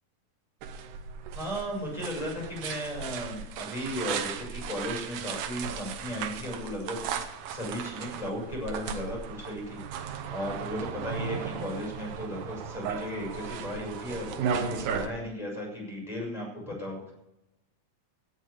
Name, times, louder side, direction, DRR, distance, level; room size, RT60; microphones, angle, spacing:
sound 1, 0.6-15.1, right 7 dB, 75° right, 2.4 m, -36 dB
voice 1, 1.3-17.1, equal, 10° left, 0 dB, 6.5 m, -36 dB
16.5 x 6.9 x 8.3 m, 0.91 s
omnidirectional pair, 3.7 m